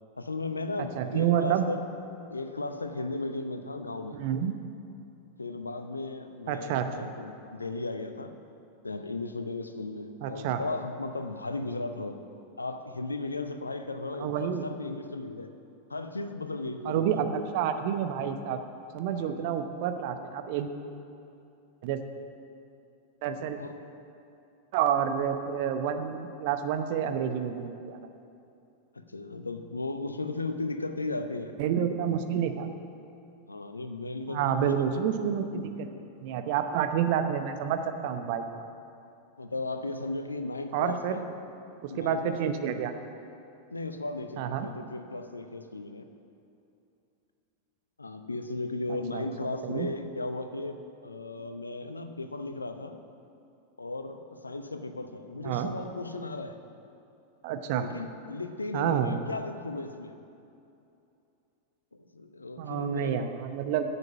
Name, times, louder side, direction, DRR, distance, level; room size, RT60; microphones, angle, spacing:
voice 1, 0.2-1.9 2.3-4.2 5.4-8.3 8.8-12.2 12.6-15.5 15.9-17.3 19.1-19.5 23.3-23.7 28.9-31.5 33.5-35.0 35.5-35.7 39.4-41.2 41.9-42.5 43.7-46.1 48.0-53.0 53.8-56.5 57.7-60.1 61.9-63.2, left 2 dB, 80° left, 8 dB, 0.7 m, -36 dB
voice 2, 0.8-1.6 4.1-4.6 6.5-7.1 10.2-10.6 14.2-14.7 16.8-18.6 18.9-20.7 21.8-22.0 23.2-23.6 24.7-28.1 31.6-32.7 34.3-35.9 36.2-38.7 40.7-41.2 41.8-42.9 44.4-44.7 49.1-49.2 49.6-49.9 55.4-55.7 57.4-57.9 58.7-59.2 62.6-63.9, right 8 dB, 50° right, 7 dB, 0.8 m, -29 dB
10.5 x 7.1 x 8.5 m, 2.7 s
figure-of-eight pair, 90°, 0 cm